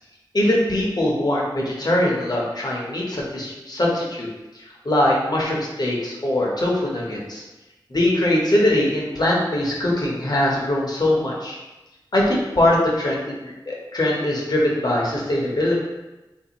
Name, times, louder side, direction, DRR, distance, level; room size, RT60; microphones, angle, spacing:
voice 1, 0.3-4.3 4.5-7.4 7.9-11.6 12.1-15.7, left 1 dB, 55° left, -3 dB, 0.9 m, -22 dB
3.5 x 2.6 x 2.9 m, 1.0 s
wide cardioid pair, 45°, 8 cm